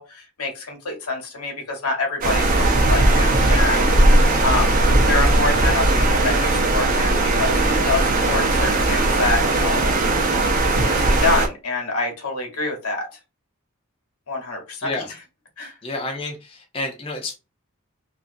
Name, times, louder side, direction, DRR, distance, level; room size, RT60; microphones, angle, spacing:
voice 1, 0.0-3.9 4.4-4.8 5.1-9.8 10.8-13.1 14.3-14.9 15.6-15.7, left 3 dB, 85° left, 2 dB, 1.0 m, -26 dB
sound 1, 2.2-11.5, right 2 dB, 40° right, 0.6 m, -18 dB
voice 2, 15.8-17.3, left 2 dB, 25° left, 1 dB, 0.5 m, -30 dB
2.9 x 2.6 x 2.5 m, 0.28 s
head